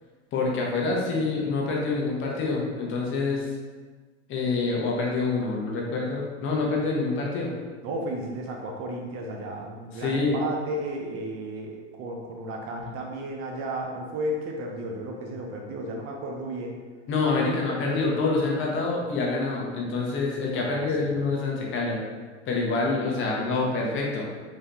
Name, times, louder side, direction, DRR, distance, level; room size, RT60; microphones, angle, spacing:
voice 1, 0.3-3.5 4.3-7.5 9.9-10.4 17.1-22.0 22.5-24.2, left 3 dB, 35° left, -2 dB, 1.0 m, -26 dB
voice 2, 7.8-16.8 17.4-17.5 17.8-18.1 20.5-20.9 23.1-23.8, right 1 dB, 40° right, 1 dB, 0.6 m, -34 dB
4.0 x 2.7 x 3.4 m, 1.4 s
supercardioid pair, 115°, 35 cm